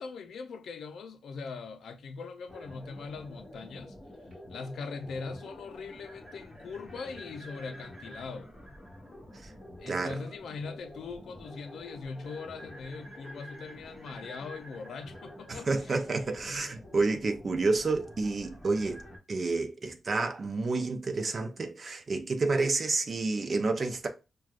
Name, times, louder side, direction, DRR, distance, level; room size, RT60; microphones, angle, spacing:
voice 1, 0.0-4.0 4.5-8.5 9.8-16.0, left 4 dB, 80° left, 0.5 m, -41 dB
sound 1, 2.5-19.2, equal, 10° left, 1.9 m, -48 dB
voice 2, 9.9-10.2 15.5-24.1, right 3 dB, 35° right, 0.5 m, -30 dB
6.0 x 2.3 x 2.4 m
wide cardioid pair, 175°, 0 cm